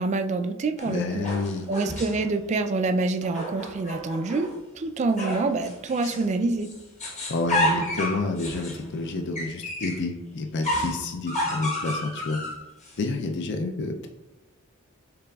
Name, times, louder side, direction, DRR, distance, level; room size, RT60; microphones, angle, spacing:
voice 1, 0.0-1.3 1.7-6.7, right 3 dB, 35° right, 8 dB, 0.3 m, -26 dB
voice 2, 0.8-1.7 7.3-12.4 13.0-14.1, left 3 dB, 55° left, 5 dB, 0.4 m, -29 dB
sound 1, 0.8-2.3 3.2-4.5 5.2-6.3 6.6-10.0 10.6-13.0, left 1 dB, 35° left, 1.1 m, -31 dB
6.7 x 3.4 x 2.3 m, 0.98 s
head